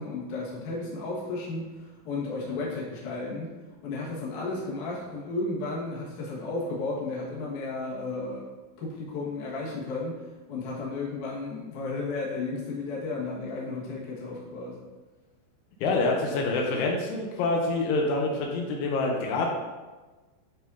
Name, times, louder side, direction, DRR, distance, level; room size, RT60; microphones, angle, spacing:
voice 1, 0.0-3.5 3.8-8.5 8.8-10.2 10.5-14.8, left 3 dB, 60° left, -5 dB, 2.3 m, -33 dB
voice 2, 15.8-19.5, left 3 dB, 85° left, 0 dB, 3.1 m, -26 dB
11.0 x 4.2 x 2.7 m, 1.2 s
omnidirectional pair, 5.5 m